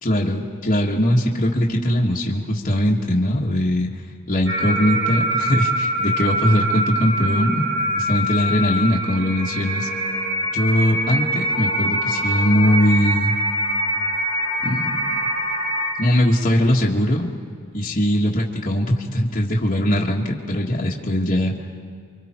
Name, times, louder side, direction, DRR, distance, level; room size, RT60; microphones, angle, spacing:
voice 1, 0.0-3.9 4.3-7.6 8.0-9.9 10.5-13.4 14.6-15.1 16.0-17.3 17.7-21.5, equal, 40° left, -5 dB, 1.7 m, -20 dB
sound 1, 4.5-15.9, equal, 60° right, 3.4 m, -24 dB
29.5 x 25.0 x 4.5 m, 2.2 s
head